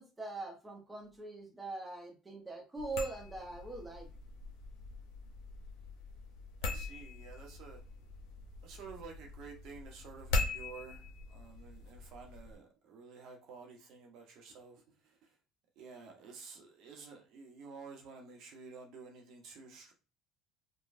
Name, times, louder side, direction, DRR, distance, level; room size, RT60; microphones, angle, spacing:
voice 1, 0.0-4.1, right 3 dB, 15° right, 0.9 m, -42 dB
sound 1, 2.8-12.5, left 3 dB, 70° left, 0.6 m, -41 dB
voice 2, 6.6-7.8 8.6-15.3 15.8-19.9, right 5 dB, 60° right, 0.9 m, -51 dB
3.1 x 2.2 x 2.6 m
hypercardioid pair, 75°, 0 cm